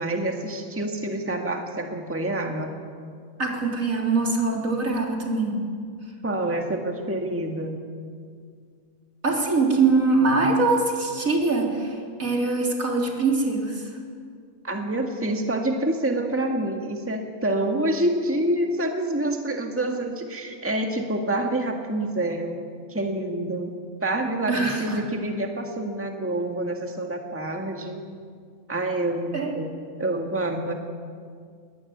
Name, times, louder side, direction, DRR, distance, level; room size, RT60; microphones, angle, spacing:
voice 1, 0.0-2.7 6.2-7.8 14.6-23.7 24.0-28.0 28.7-29.7 30.0-30.7, right 1 dB, 10° right, 3 dB, 1.8 m, -27 dB
voice 2, 3.4-5.6 9.2-13.8 24.5-25.0 29.3-29.5, right 3 dB, 65° right, 0 dB, 4.1 m, -23 dB
22.0 x 19.0 x 9.5 m, 2.1 s
omnidirectional pair, 1.5 m